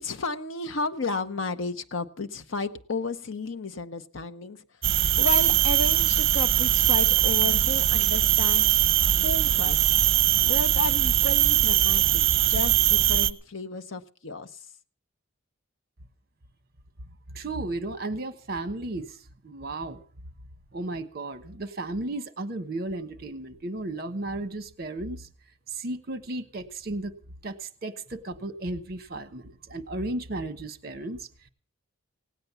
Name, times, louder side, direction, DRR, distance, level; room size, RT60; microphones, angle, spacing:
voice 1, 0.0-9.8 10.4-14.7, left 3 dB, 65° left, 9 dB, 0.8 m, -33 dB
sound 1, 4.8-13.3, right 12 dB, 65° right, 0.7 m, -21 dB
voice 2, 17.3-19.2 19.4-20.0 20.7-25.3 25.7-27.1 27.4-31.3, right 2 dB, 45° right, 10 dB, 1.2 m, -34 dB
17.5 x 9.1 x 6.9 m, 0.44 s
head